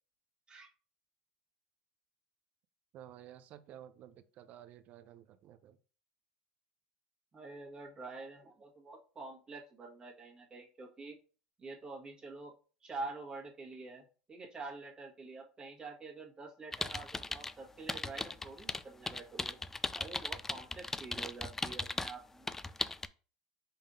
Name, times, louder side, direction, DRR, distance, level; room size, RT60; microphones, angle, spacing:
voice 1, 2.9-5.8, right 11 dB, 50° right, 0.6 m, -53 dB
voice 2, 7.3-11.2 11.6-12.5 12.8-19.6 20.0-22.5, right 3 dB, 30° right, 1.6 m, -47 dB
sound 1, 16.7-17.5 17.9-22.1 22.5-23.1, left 3 dB, 10° left, 0.3 m, -37 dB
5.4 x 3.6 x 2.7 m
hypercardioid pair, 90°, 3 cm